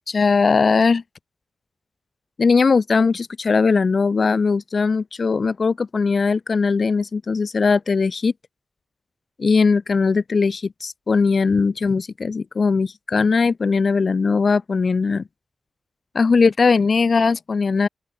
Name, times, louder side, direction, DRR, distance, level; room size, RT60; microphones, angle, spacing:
voice 1, 0.1-1.0 2.4-8.3 9.4-15.2 16.1-17.9, left 4 dB, 55° left, 2.0 m, -19 dB
open air
wide cardioid pair, 90°, 0 cm